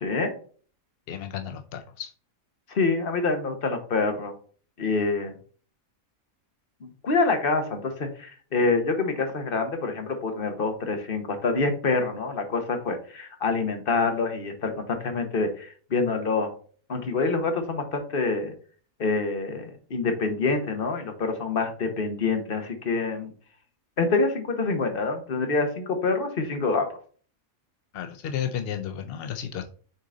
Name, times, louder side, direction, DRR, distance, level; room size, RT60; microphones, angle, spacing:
voice 1, 0.0-0.3 2.7-4.3 4.8-5.4 6.8-16.5 16.9-18.5 19.0-23.3 24.0-26.9, left 3 dB, 45° left, 6 dB, 1.2 m, -26 dB
voice 2, 1.1-2.1 27.9-29.6, left 9 dB, 65° left, 6 dB, 0.6 m, -33 dB
6.7 x 3.8 x 3.8 m, 0.44 s
omnidirectional pair, 1.5 m